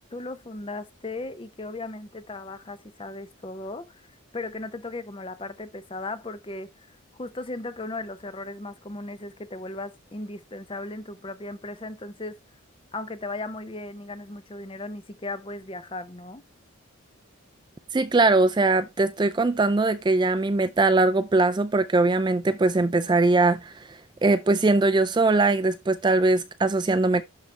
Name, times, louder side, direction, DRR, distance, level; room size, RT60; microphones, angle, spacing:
voice 1, 0.1-6.9 7.2-12.4 12.9-16.4, left 2 dB, 25° left, 0.6 m, -36 dB
voice 2, 17.9-27.2, right 3 dB, 20° right, 0.3 m, -21 dB
11.5 x 4.0 x 3.3 m
head